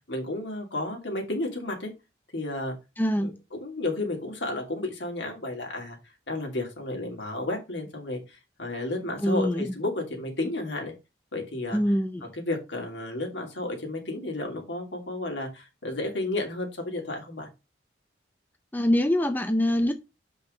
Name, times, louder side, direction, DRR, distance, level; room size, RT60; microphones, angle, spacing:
voice 1, 0.1-1.9 2.3-2.7 3.2-3.3 3.6-6.0 6.3-10.9 11.3-11.8 12.3-17.5, left 2 dB, 75° left, 2.8 m, -32 dB
voice 2, 3.0-3.4 9.2-9.7 11.7-12.3 18.7-19.9, equal, 10° left, 0.5 m, -24 dB
6.2 x 5.3 x 5.1 m
head